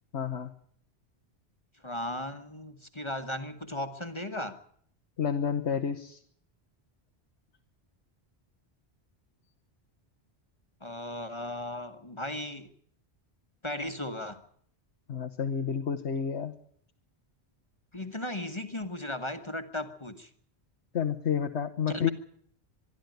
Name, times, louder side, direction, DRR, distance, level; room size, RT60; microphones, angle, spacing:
voice 1, 0.1-0.5 5.2-6.2 15.1-16.5 20.9-22.1, left 7 dB, 85° left, 5 dB, 1.4 m, -30 dB
voice 2, 1.8-4.6 10.8-12.7 13.6-14.4 17.9-20.3 21.9-22.1, left 1 dB, 25° left, 8 dB, 1.3 m, -36 dB
25.0 x 11.0 x 9.2 m, 0.63 s
omnidirectional pair, 1.1 m